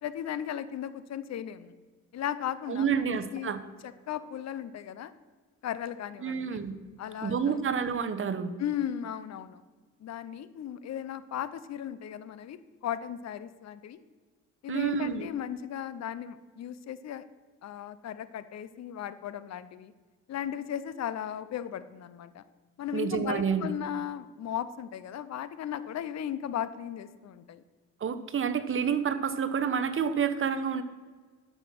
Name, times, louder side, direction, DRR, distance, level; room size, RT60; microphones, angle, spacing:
voice 1, 0.0-1.7 2.1-3.6 3.8-5.1 5.6-6.6 7.0-7.6 8.6-9.6 10.0-14.0 14.6-17.2 17.6-19.9 20.3-22.4 22.8-27.6, left 10 dB, 60° left, 14 dB, 0.7 m, -36 dB
voice 2, 2.7-3.6 6.2-6.8 7.2-8.5 14.7-15.3 22.9-23.7 28.0-30.8, right 7 dB, 45° right, 10 dB, 1.0 m, -29 dB
12.0 x 5.7 x 6.0 m, 1.4 s
cardioid pair, 90°, 30 cm